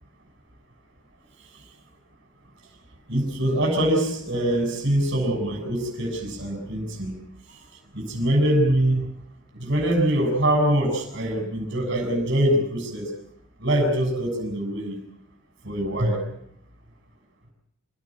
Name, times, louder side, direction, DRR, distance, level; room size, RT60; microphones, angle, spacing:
voice 1, 3.1-7.1 7.5-7.6 7.9-9.0 9.5-13.1 13.6-15.0 15.6-16.3, right 1 dB, 50° right, 0 dB, 7.0 m, -23 dB
26.5 x 18.0 x 7.5 m, 0.74 s
head